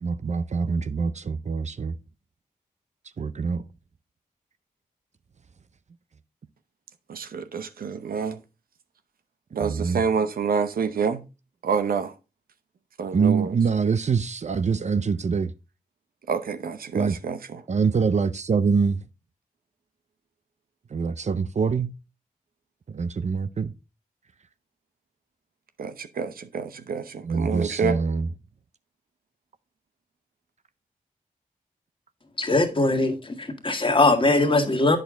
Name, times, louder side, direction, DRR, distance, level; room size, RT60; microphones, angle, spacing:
voice 1, 0.0-2.0 3.2-3.6 9.6-10.0 13.1-15.5 16.9-17.2 17.7-19.0 20.9-21.9 22.9-23.7 27.2-28.3, right 5 dB, 50° right, 0.6 m, -24 dB
voice 2, 7.1-8.4 9.5-11.2 11.6-12.1 13.0-13.5 16.3-17.4 25.8-28.0, right 6 dB, 80° right, 0.8 m, -27 dB
voice 3, 32.4-35.0, left 2 dB, 35° left, 1.8 m, -21 dB
8.2 x 6.5 x 3.7 m
cardioid pair, 50°, 15 cm